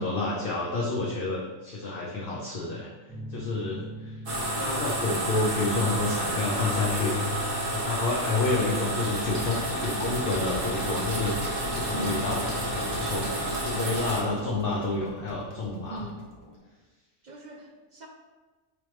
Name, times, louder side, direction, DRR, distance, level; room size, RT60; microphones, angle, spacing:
voice 1, 0.0-2.9 3.3-4.2 4.5-7.1 7.6-13.3 13.6-16.0, left 2 dB, 50° left, -4 dB, 0.8 m, -29 dB
sound 1, 3.1-14.3, left 1 dB, 5° right, 1.2 m, -44 dB
sound 2, 4.3-14.2, right 1 dB, 75° right, 1.6 m, -30 dB
sound 3, 6.2-7.6 8.0-16.6, left 2 dB, 20° left, 0.7 m, -38 dB
voice 2, 11.9-12.2 15.9-16.2 17.2-18.1, right 2 dB, 55° right, 1 dB, 0.5 m, -38 dB
9.3 x 3.3 x 3.1 m, 1.3 s
omnidirectional pair, 1.4 m